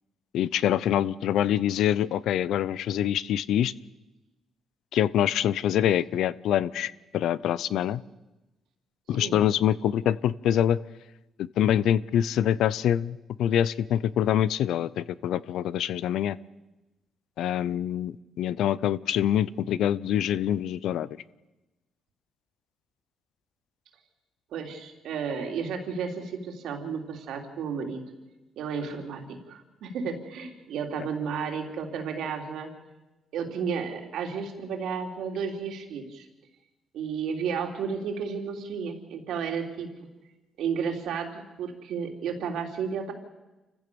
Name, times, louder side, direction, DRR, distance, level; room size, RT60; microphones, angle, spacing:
voice 1, 0.3-3.7 4.9-8.0 9.1-10.8 11.4-16.4 17.4-21.1, left 10 dB, 80° left, 19 dB, 0.6 m, -25 dB
voice 2, 24.5-28.0 28.6-32.7 33.3-36.3 36.9-39.9 40.6-43.1, right 6 dB, 80° right, 3 dB, 3.3 m, -32 dB
28.5 x 15.5 x 6.9 m, 1.1 s
cardioid pair, 90°, 0 cm